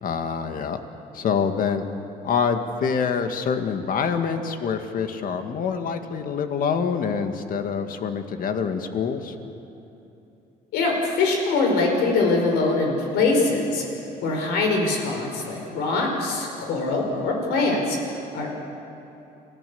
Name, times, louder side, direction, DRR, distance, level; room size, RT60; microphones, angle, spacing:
voice 1, 0.0-0.8 1.1-1.8 2.2-9.4, left 6 dB, 55° left, 7 dB, 1.9 m, -26 dB
voice 2, 10.7-13.9 14.2-18.6, left 3 dB, 90° left, 1 dB, 5.2 m, -23 dB
29.5 x 16.5 x 7.0 m, 2.9 s
cardioid pair, 110°, 17 cm